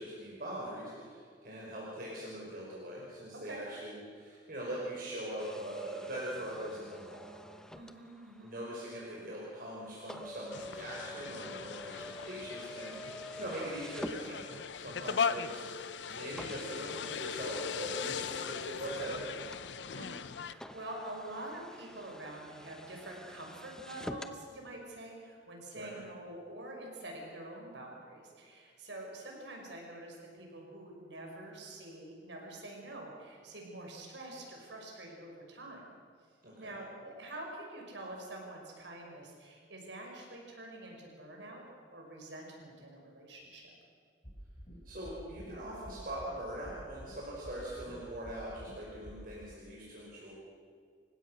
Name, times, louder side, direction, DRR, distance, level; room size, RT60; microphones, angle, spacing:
voice 1, 0.0-7.4 8.4-12.0 12.2-19.3 25.7-26.0 36.4-36.8 44.8-50.3, right 1 dB, 55° right, -5 dB, 5.3 m, -42 dB
sound 1, 5.4-14.9 15.6-15.7 16.4-24.4, left 1 dB, 5° left, 1.0 m, -49 dB
voice 2, 7.7-8.5 19.9-35.9 36.6-41.6 41.9-43.7 49.0-49.3, right 1 dB, 90° right, 0 dB, 6.0 m, -46 dB
sound 2, 10.5-20.5, left 6 dB, 80° left, 0.7 m, -39 dB
sound 3, 44.2-44.7 45.0-45.5 45.8-46.3 46.6-47.1 47.4-47.9 48.2-48.7 49.0-49.2, equal, 30° left, 7.4 m, -49 dB
29.0 x 16.0 x 6.6 m, 2.1 s
head